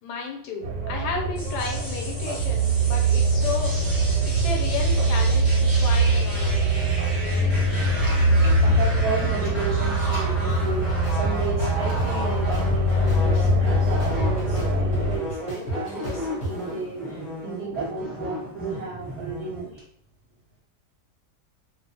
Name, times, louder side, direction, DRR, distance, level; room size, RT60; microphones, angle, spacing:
voice 1, 0.0-3.7 4.3-6.6, left 5 dB, 80° left, 1 dB, 1.2 m, -33 dB
sound 1, 0.6-15.2, right 2 dB, 90° right, 1.2 m, -22 dB
sound 2, 1.3-19.8, equal, ahead, 1.0 m, -35 dB
voice 2, 8.0-19.8, right 3 dB, 75° right, -3 dB, 1.0 m, -33 dB
sound 3, 10.5-10.6 11.0-12.1 12.5-13.7 14.0-16.5, right 1 dB, 35° left, 0.6 m, -31 dB
2.5 x 2.3 x 2.7 m, 0.67 s
omnidirectional pair, 1.8 m